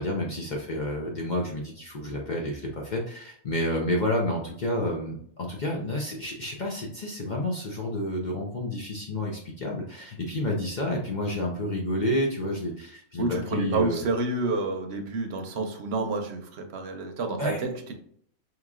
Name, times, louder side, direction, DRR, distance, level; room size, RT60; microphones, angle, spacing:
voice 1, 0.0-14.0 17.4-17.6, left 1 dB, 50° left, -1 dB, 0.6 m, -30 dB
voice 2, 13.2-17.9, right 3 dB, 60° right, 5 dB, 0.8 m, -29 dB
4.9 x 3.0 x 2.4 m, 0.63 s
omnidirectional pair, 1.4 m